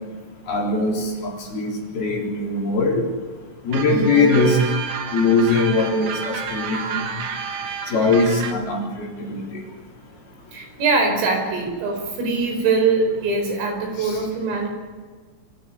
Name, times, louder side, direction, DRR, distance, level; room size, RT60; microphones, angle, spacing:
voice 1, 0.5-3.1 3.7-4.6 5.1-6.8 7.9-9.4 14.0-14.2, left 3 dB, 50° left, -2 dB, 5.5 m, -21 dB
sound 1, 3.7-8.5, right 6 dB, 65° right, 1.9 m, -30 dB
voice 2, 3.9-4.3 10.5-14.7, right 3 dB, 85° right, 3 dB, 7.2 m, -22 dB
26.5 x 15.0 x 8.4 m, 1.5 s
omnidirectional pair, 5.7 m